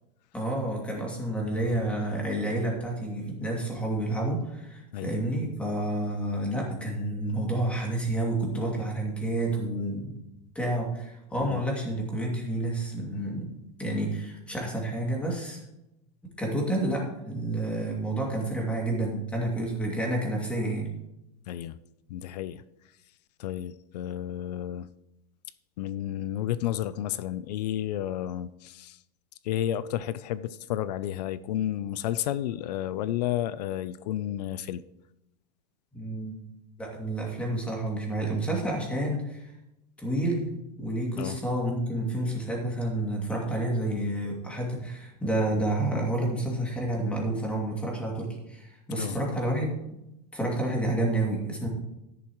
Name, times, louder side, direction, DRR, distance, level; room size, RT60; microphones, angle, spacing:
voice 1, 0.3-10.1 10.5-13.5 13.8-15.6 16.4-20.9 35.9-36.4 36.8-39.5 40.0-49.7 50.3-51.7, right 1 dB, 5° left, -2 dB, 2.5 m, -29 dB
voice 2, 21.5-21.8 22.1-22.6 23.4-24.9 25.8-29.0 29.4-34.8 41.2-41.4 49.0-49.2, left 12 dB, 85° left, 16 dB, 0.5 m, -31 dB
13.0 x 11.0 x 3.1 m, 0.88 s
supercardioid pair, 165°, 21 cm